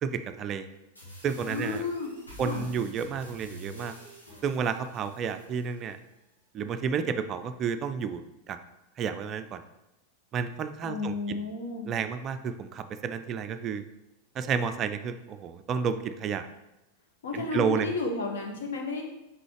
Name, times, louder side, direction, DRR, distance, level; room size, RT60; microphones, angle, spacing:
voice 1, 0.0-0.7 1.2-1.8 2.4-3.9 4.4-6.0 6.5-8.6 9.0-9.6 10.3-11.4 11.9-13.8 14.4-16.5 17.3-17.9, right 6 dB, 30° right, 9 dB, 0.3 m, -31 dB
sound 1, 0.9-6.0, equal, 85° left, 2.1 m, -48 dB
voice 2, 1.4-2.1 2.4-2.7 10.8-11.9 17.2-19.0, left 4 dB, 60° left, 1 dB, 1.1 m, -32 dB
6.0 x 4.8 x 3.2 m, 0.97 s
figure-of-eight pair, 90°, 0 cm